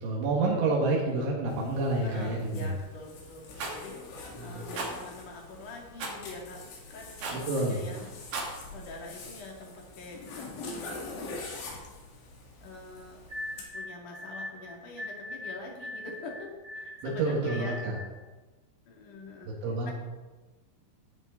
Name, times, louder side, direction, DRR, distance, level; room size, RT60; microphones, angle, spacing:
voice 1, 0.0-2.7 4.4-4.6 7.3-7.8 17.0-18.0 19.5-19.9, right 2 dB, 80° right, -3 dB, 4.4 m, -29 dB
Zipper (clothing), 1.5-13.7, left 3 dB, 80° left, 5.0 m, -44 dB
voice 2, 2.0-4.0 4.4-6.6 6.9-8.1 8.7-11.5 12.6-13.2 13.7-17.8 18.9-19.5 19.8-19.9, left 3 dB, 50° left, -1 dB, 3.6 m, -45 dB
Rattle, 3.6-3.8 4.7-4.9 6.0-6.2 7.2-7.5 8.2-8.5, right 3 dB, 55° right, 3.9 m, -34 dB
sound 1, 13.3-18.2, left 1 dB, 35° right, 4.8 m, -41 dB
16.5 x 11.0 x 4.0 m, 1.2 s
omnidirectional pair, 5.3 m